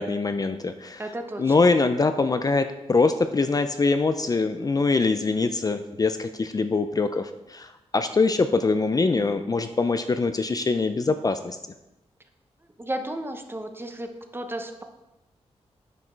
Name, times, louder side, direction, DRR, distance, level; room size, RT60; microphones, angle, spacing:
voice 1, 0.0-1.0 1.4-7.7 7.9-11.6, left 3 dB, 35° left, 9 dB, 0.5 m, -23 dB
voice 2, 1.0-1.5 12.8-14.1 14.3-14.8, right 1 dB, 20° right, 6 dB, 0.9 m, -33 dB
9.6 x 5.1 x 4.5 m, 0.96 s
wide cardioid pair, 95°, 11 cm